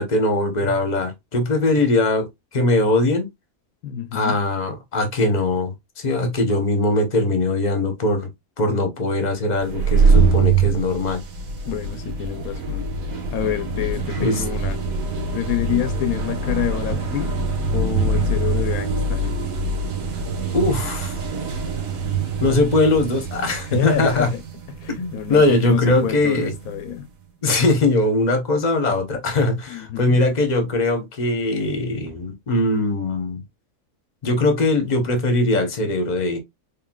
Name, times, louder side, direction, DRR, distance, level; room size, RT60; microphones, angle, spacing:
voice 1, 0.0-2.3 2.5-3.3 4.1-8.3 8.6-11.2 14.2-14.4 20.5-21.2 22.4-24.3 25.0-26.5 27.4-33.4 34.2-36.4, left 2 dB, 35° left, 1.0 m, -21 dB
voice 2, 3.8-4.4 11.7-12.9 13.3-14.8 15.3-17.3 17.7-19.4 23.6-24.4 24.7-27.1 29.7-30.2, left 11 dB, 80° left, 1.0 m, -28 dB
sound 1, 9.6-27.0, right 4 dB, 70° right, 1.4 m, -24 dB
4.4 x 3.5 x 2.2 m
omnidirectional pair, 1.5 m